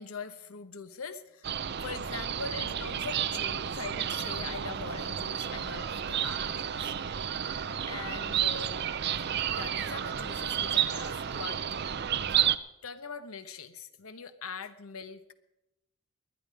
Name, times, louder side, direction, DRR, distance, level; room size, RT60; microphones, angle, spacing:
voice 1, 0.0-1.5 1.8-6.9 7.3-7.6 7.9-8.8 9.5-11.6 12.8-15.3, left 5 dB, 80° left, 11 dB, 1.0 m, -42 dB
sound 1, 1.4-12.6, right 9 dB, 50° right, 0.5 m, -31 dB
sound 2, 3.6-12.0, left 2 dB, 30° left, 2.2 m, -56 dB
19.5 x 11.0 x 5.2 m, 0.91 s
head